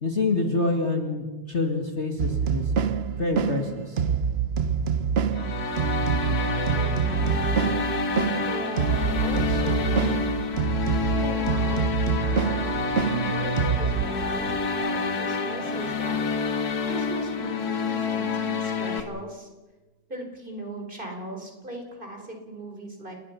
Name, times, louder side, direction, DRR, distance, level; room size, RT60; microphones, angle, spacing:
voice 1, 0.0-2.7 3.1-4.0, left 3 dB, 35° left, 3 dB, 2.3 m, -27 dB
sound 1, 2.2-14.1, right 7 dB, 55° right, 0.7 m, -26 dB
sound 2, 5.3-19.0, left 4 dB, 55° left, 2.1 m, -28 dB
voice 2, 6.2-7.4 8.5-10.1 11.1-11.8 12.3-16.2 16.8-19.5 20.1-23.1, right 1 dB, 25° right, 2 dB, 4.3 m, -38 dB
sound 3, 9.2-14.7, right 3 dB, 75° right, 3.4 m, -45 dB
29.0 x 20.0 x 5.8 m, 1.2 s
omnidirectional pair, 2.1 m